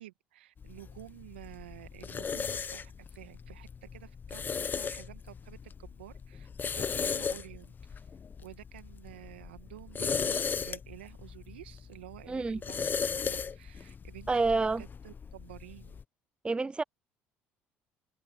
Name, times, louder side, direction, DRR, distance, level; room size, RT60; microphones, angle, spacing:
voice 1, 0.0-8.1 8.4-16.0, right 15 dB, 90° right, 1.7 m, -51 dB
sound 1, 0.6-16.0, left 6 dB, 35° left, 0.7 m, -37 dB
voice 2, 12.3-12.6 14.3-14.8 16.4-16.8, right 3 dB, 20° right, 0.5 m, -28 dB
hypercardioid pair, 60°, 6 cm